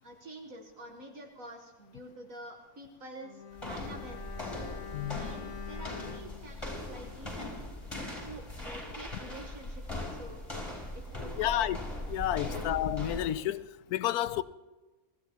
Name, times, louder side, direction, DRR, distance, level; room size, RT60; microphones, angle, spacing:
voice 1, 0.0-11.7 12.5-12.7, right 1 dB, 65° right, 1.8 m, -48 dB
Bowed string instrument, 3.2-7.6 7.9-8.1, left 9 dB, 50° left, 1.4 m, -47 dB
sound 1, 3.5-13.5, left 1 dB, 20° left, 3.8 m, -40 dB
voice 2, 4.9-5.3 11.4-11.8 12.1-14.4, left 13 dB, 90° left, 1.1 m, -31 dB
23.5 x 15.5 x 3.0 m
omnidirectional pair, 1.6 m